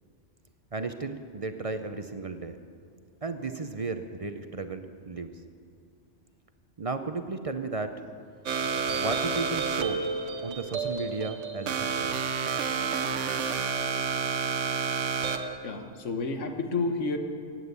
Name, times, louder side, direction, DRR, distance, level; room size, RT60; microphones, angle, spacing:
voice 1, 0.7-2.6 3.2-5.4 6.8-8.0 8.9-10.0 10.4-12.3, right 3 dB, 40° right, 8 dB, 0.6 m, -34 dB
sound 1, 8.5-15.6, right 5 dB, 85° right, 1.2 m, -30 dB
voice 2, 15.6-17.2, left 3 dB, 85° left, 6 dB, 1.6 m, -30 dB
15.5 x 9.4 x 8.1 m, 2.4 s
omnidirectional pair, 1.2 m